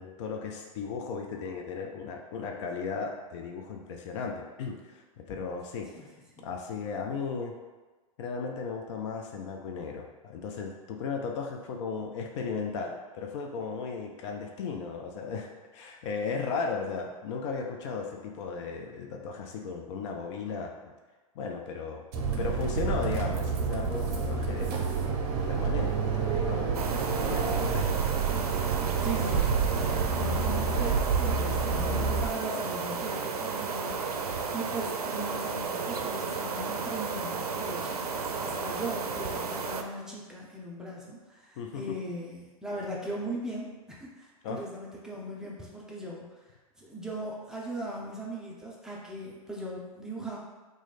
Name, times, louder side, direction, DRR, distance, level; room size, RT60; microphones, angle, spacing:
voice 1, 0.0-6.1 6.4-7.5 8.2-20.9 21.4-22.0 22.4-24.8 25.5-27.9 28.8-29.4 41.6-42.0 44.4-44.6, left 5 dB, 50° left, 2 dB, 0.5 m, -36 dB
sound 1, 22.1-32.3, right 5 dB, 45° right, 0.7 m, -28 dB
sound 2, 26.7-39.8, right 5 dB, 85° right, 0.4 m, -33 dB
voice 2, 29.0-46.3 46.8-50.4, right 1 dB, 5° right, -4 dB, 0.7 m, -39 dB
3.0 x 2.5 x 4.0 m, 1.3 s
hypercardioid pair, 105°, 19 cm